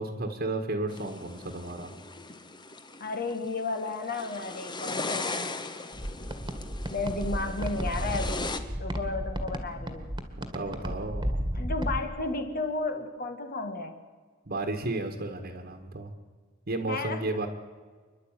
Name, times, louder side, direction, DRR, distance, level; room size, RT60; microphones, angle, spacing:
voice 1, 0.0-1.9 9.8-9.9 10.4-11.4 14.5-16.1 16.7-17.5, right 2 dB, 50° right, 4 dB, 1.7 m, -33 dB
sound 1, 0.9-8.6, left 3 dB, 20° left, 1.3 m, -38 dB
voice 2, 3.0-5.6 6.9-10.1 11.5-14.0 16.9-17.4, left 3 dB, 50° left, 6 dB, 1.9 m, -33 dB
sound 2, 5.9-12.0, equal, 20° right, 1.9 m, -33 dB
27.5 x 11.5 x 9.1 m, 1.5 s
head